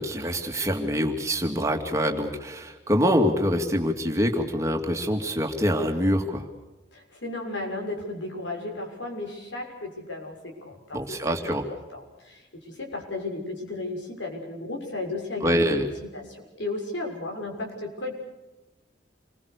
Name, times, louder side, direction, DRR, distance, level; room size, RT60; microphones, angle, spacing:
voice 1, 0.0-6.5 10.9-11.6 15.4-15.8, equal, 15° right, 3 dB, 2.6 m, -25 dB
voice 2, 6.9-11.0 11.3-11.6 11.9-15.7 16.1-18.1, left 2 dB, 90° left, 2 dB, 6.8 m, -34 dB
28.5 x 22.0 x 6.8 m, 1.0 s
head